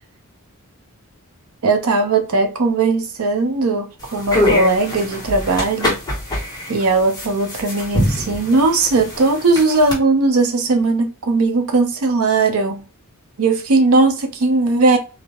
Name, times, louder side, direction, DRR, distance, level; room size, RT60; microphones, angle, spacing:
voice 1, 1.6-6.0 6.7-12.8 13.4-15.0, right 3 dB, 70° right, 0.5 m, -18 dB
sound 1, 4.0-10.0, left 1 dB, 15° left, 0.9 m, -24 dB
2.3 x 2.0 x 2.8 m
head